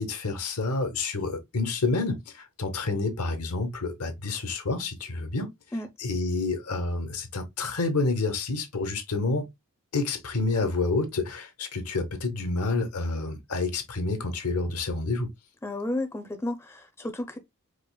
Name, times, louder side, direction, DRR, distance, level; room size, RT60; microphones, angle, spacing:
voice 1, 0.0-5.5 6.0-9.5 9.9-15.3, left 3 dB, 85° left, 0.9 m, -29 dB
voice 2, 15.6-17.4, left 1 dB, 10° left, 0.5 m, -32 dB
4.8 x 2.0 x 2.2 m
head